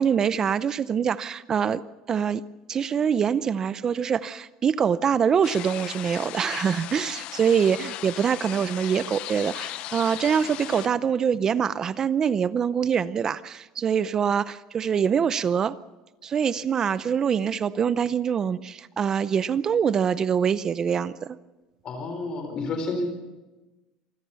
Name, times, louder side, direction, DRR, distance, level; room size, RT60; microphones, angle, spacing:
voice 1, 0.0-2.4 2.7-15.8 16.2-21.4, right 7 dB, 30° right, 16 dB, 0.6 m, -24 dB
sound 1, 5.4-10.9, left 15 dB, 55° left, 0.7 m, -37 dB
voice 2, 21.8-23.1, left 3 dB, 40° left, 5 dB, 4.1 m, -30 dB
27.0 x 15.0 x 7.0 m, 1.1 s
cardioid pair, 140°, 2 cm